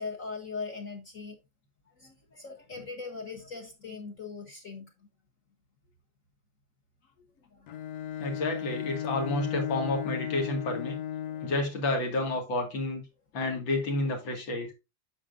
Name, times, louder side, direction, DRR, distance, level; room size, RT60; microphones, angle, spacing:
voice 1, 0.0-1.4 1.9-4.9 7.5-7.7 8.2-8.4 11.2-11.5, left 4 dB, 50° left, 1.4 m, -40 dB
Bowed string instrument, 7.7-11.8, left 10 dB, 65° left, 1.2 m, -35 dB
voice 2, 8.2-11.0 11.4-13.0 13.3-14.7, left 2 dB, 85° left, 2.8 m, -30 dB
8.7 x 6.9 x 2.5 m
omnidirectional pair, 2.1 m